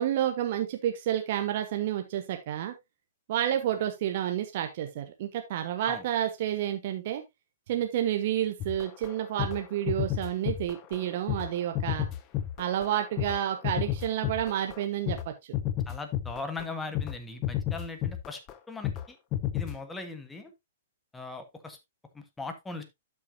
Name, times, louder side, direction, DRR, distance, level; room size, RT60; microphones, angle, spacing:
voice 1, 0.0-2.7 3.3-7.2 7.7-12.1 12.6-15.3, right 11 dB, 45° right, 6 dB, 1.2 m, -30 dB
sound 1, 8.6-15.3 15.5-16.6 16.9-17.2 17.4-18.5 18.8-19.1 19.3-19.8, left 11 dB, 30° left, 0.8 m, -32 dB
voice 2, 15.9-18.4 18.7-19.2 19.5-20.5 21.1-21.8 22.1-22.8, left 3 dB, 10° left, 7 dB, 1.5 m, -39 dB
12.0 x 6.2 x 2.7 m, 0.20 s
figure-of-eight pair, 115°, 0 cm